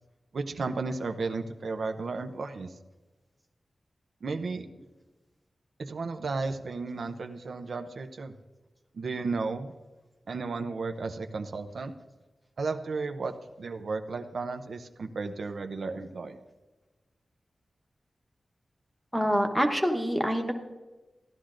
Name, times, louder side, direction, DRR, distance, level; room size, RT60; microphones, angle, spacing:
voice 1, 0.3-2.7 4.2-4.7 5.8-8.3 8.9-9.7 10.3-11.9 12.6-16.4, right 4 dB, 70° right, 6 dB, 0.6 m, -34 dB
voice 2, 19.1-20.5, equal, 5° left, 4 dB, 1.1 m, -26 dB
15.0 x 11.5 x 2.5 m, 1.2 s
wide cardioid pair, 140°, 0 cm